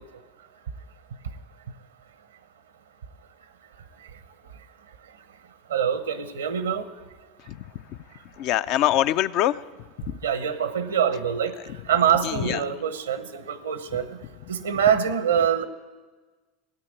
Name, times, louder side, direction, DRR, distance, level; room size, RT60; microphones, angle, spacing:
voice 1, 5.7-6.8 10.2-11.5 11.9-14.2 14.5-15.6, right 8 dB, 90° right, 12 dB, 1.0 m, -24 dB
voice 2, 8.4-9.5 12.2-12.6, left 13 dB, 60° left, 13 dB, 0.5 m, -23 dB
16.5 x 8.9 x 9.5 m, 1.3 s
hypercardioid pair, 85°, 0 cm